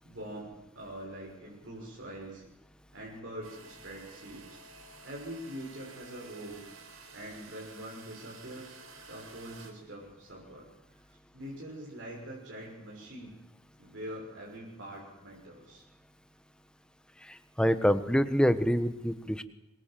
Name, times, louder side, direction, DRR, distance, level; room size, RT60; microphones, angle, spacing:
voice 1, 0.0-2.4 2.9-4.6 5.0-6.6 7.1-8.8 9.1-10.7 11.1-13.4 13.8-15.8, right 1 dB, 60° right, -3 dB, 6.5 m, -44 dB
sound 1, 3.4-9.7, right 4 dB, 80° right, 5.1 m, -52 dB
voice 2, 17.3-19.4, equal, 5° left, 11 dB, 1.2 m, -26 dB
26.5 x 22.5 x 7.7 m, 0.92 s
head